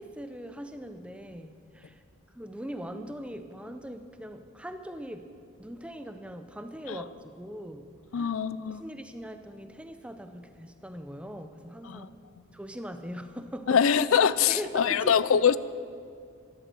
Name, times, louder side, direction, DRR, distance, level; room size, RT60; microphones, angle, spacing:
voice 1, 0.0-2.0 2.3-5.3 5.6-8.4 8.7-12.1 12.5-13.8 14.5-15.4, equal, 5° right, 8 dB, 0.6 m, -41 dB
voice 2, 8.1-8.8 11.9-12.1 13.7-15.6, left 7 dB, 80° left, 17 dB, 0.4 m, -23 dB
13.0 x 11.0 x 7.6 m, 2.3 s
head